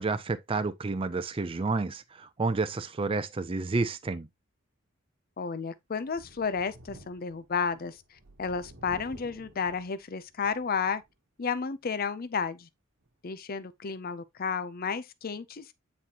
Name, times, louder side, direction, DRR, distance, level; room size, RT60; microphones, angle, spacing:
voice 1, 0.0-4.3, right 3 dB, 25° right, 0.4 m, -30 dB
voice 2, 5.4-11.0 11.4-12.7 13.2-15.7, left 5 dB, 45° left, 0.6 m, -32 dB
Thunder, 6.0-11.1 11.6-11.7 13.0-13.1, right 1 dB, 65° right, 1.1 m, -52 dB
9.2 x 4.1 x 2.9 m
head